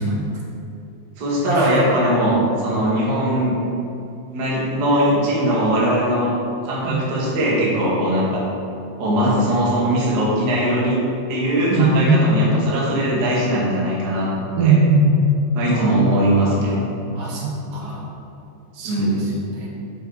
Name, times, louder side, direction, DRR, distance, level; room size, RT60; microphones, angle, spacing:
voice 1, 1.2-3.6 4.3-6.3 6.6-8.4 9.0-11.0 11.3-14.3 14.6-14.8 15.5-16.8 18.8-19.3, equal, 60° right, -6 dB, 1.1 m, -20 dB
voice 2, 11.7-12.2 14.6-15.1 15.7-16.1 17.2-18.0 18.7-19.7, right 4 dB, 75° right, -3 dB, 2.2 m, -20 dB
6.4 x 5.4 x 3.8 m, 2.8 s
omnidirectional pair, 4.0 m